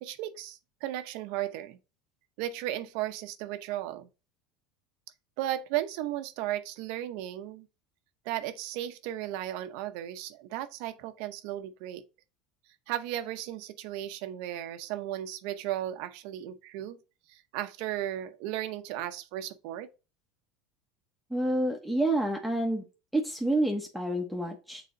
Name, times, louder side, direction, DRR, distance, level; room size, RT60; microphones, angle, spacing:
voice 1, 0.0-1.8 2.4-4.1 5.4-7.7 8.2-12.0 12.9-17.0 17.3-19.9, right 13 dB, 70° right, 0.7 m, -35 dB
voice 2, 21.3-22.8 23.1-24.8, right 1 dB, ahead, 1.2 m, -28 dB
6.8 x 4.2 x 3.9 m
supercardioid pair, 105°, 2 cm